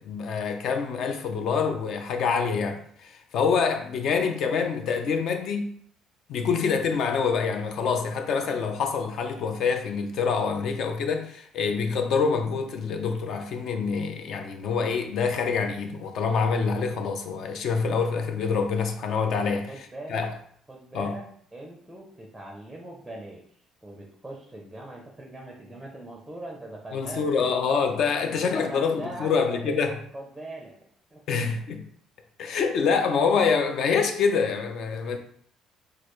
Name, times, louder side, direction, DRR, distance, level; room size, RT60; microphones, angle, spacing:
voice 1, 0.0-5.7 6.3-19.7 20.1-20.3 20.9-21.2 26.9-29.9 31.3-31.9 32.4-35.2, left 5 dB, 50° left, 0.5 m, -26 dB
voice 2, 19.7-20.2 20.7-21.2 21.5-23.4 23.8-27.6 28.2-30.7 31.1-31.2, right 1 dB, 5° right, 0.6 m, -40 dB
6.4 x 2.4 x 3.1 m
cardioid pair, 175°, 0 cm